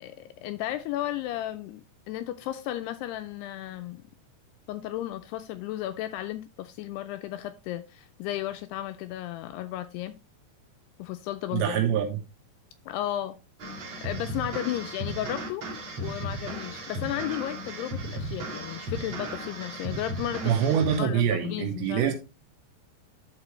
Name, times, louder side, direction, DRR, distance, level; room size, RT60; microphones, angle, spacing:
voice 1, 0.0-4.0 4.7-10.2 11.0-11.8 12.9-13.4 14.0-15.6 16.0-20.6 21.0-22.1, left 13 dB, 85° left, 2.4 m, -34 dB
voice 2, 11.5-12.2 20.4-22.1, right 8 dB, 80° right, 3.7 m, -25 dB
sound 1, 13.6-21.0, right 1 dB, 45° right, 1.8 m, -36 dB
12.0 x 4.8 x 3.1 m
omnidirectional pair, 5.1 m